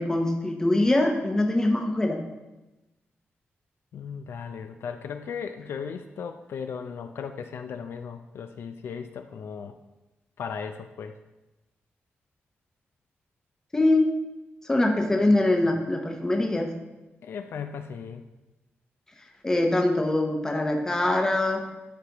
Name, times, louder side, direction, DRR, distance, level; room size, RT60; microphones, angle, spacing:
voice 1, 0.0-2.2 13.7-14.1 14.6-16.7 19.4-21.7, left 1 dB, 15° left, 2 dB, 0.8 m, -23 dB
voice 2, 3.9-9.8 10.4-11.1 17.2-18.2, left 6 dB, 70° left, 7 dB, 0.4 m, -36 dB
11.5 x 4.9 x 2.9 m, 1.1 s
wide cardioid pair, 175°, 4 cm